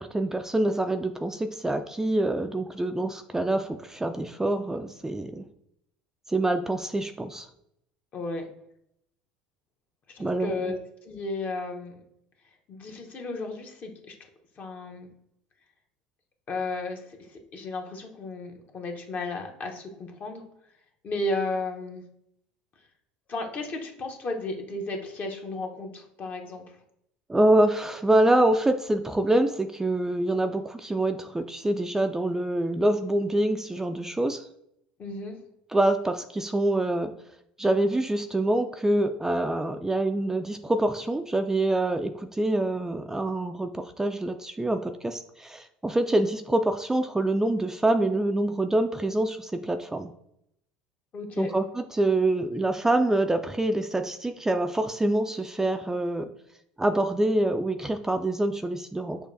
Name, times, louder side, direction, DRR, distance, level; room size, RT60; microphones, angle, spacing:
voice 1, 0.0-5.5 6.3-7.5 10.2-10.7 27.3-34.4 35.7-37.1 37.6-50.1 51.4-56.3 56.8-59.2, right 1 dB, 10° right, 6 dB, 0.3 m, -25 dB
voice 2, 8.1-8.5 10.1-12.0 12.7-14.1 14.6-15.1 16.5-20.4 21.0-22.0 23.3-26.6 35.0-35.4 51.1-51.5, left 2 dB, 40° left, 3 dB, 0.9 m, -34 dB
6.3 x 2.4 x 2.6 m, 0.75 s
hypercardioid pair, 70°, 4 cm